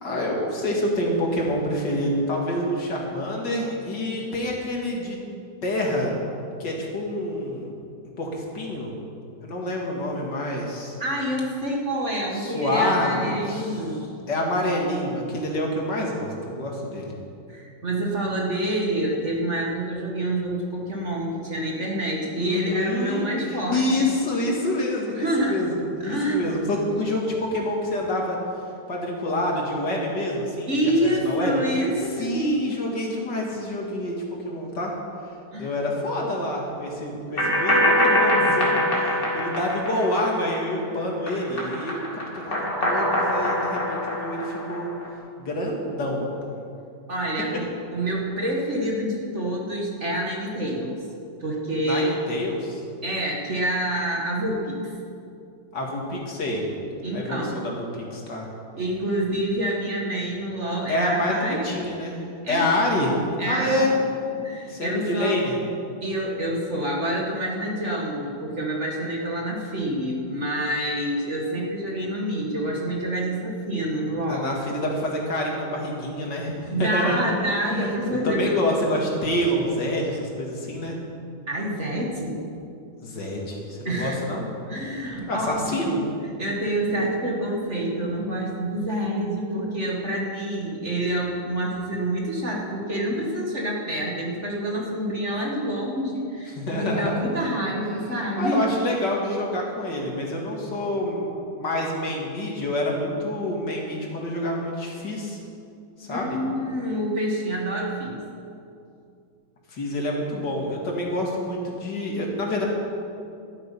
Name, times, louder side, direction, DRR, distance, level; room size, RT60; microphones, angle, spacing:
voice 1, 0.0-5.2 5.6-6.1 6.6-7.7 8.2-8.9 9.4-11.0 12.4-13.7 14.3-17.1 22.4-28.4 28.9-31.8 32.2-34.9 35.6-42.0 42.3-44.9 45.4-46.3 51.8-52.8 55.7-56.6 57.1-58.5 60.9-63.2 63.4-63.9 64.7-65.6 74.3-77.3 77.8-81.0 83.0-84.4 85.3-86.0 96.6-97.2 98.4-101.2 101.5-105.4 106.0-106.4 109.7-112.7, left 1 dB, 60° left, -1 dB, 2.7 m, -27 dB
voice 2, 11.0-14.1 17.5-23.8 25.2-25.6 26.0-26.4 30.7-32.7 35.5-35.7 47.1-51.0 51.4-52.2 53.0-54.9 57.0-57.6 58.8-61.7 62.4-62.7 63.4-63.9 64.4-65.4 66.0-74.5 76.7-78.6 78.9-79.0 81.5-82.5 83.9-84.2 84.7-86.0 86.4-98.7 106.1-108.2, right 1 dB, 40° right, -2 dB, 1.9 m, -27 dB
sound 1, 37.4-40.8 41.1-45.1, left 1 dB, 25° left, 2.6 m, -23 dB
13.0 x 12.5 x 5.5 m, 2.5 s
omnidirectional pair, 2.1 m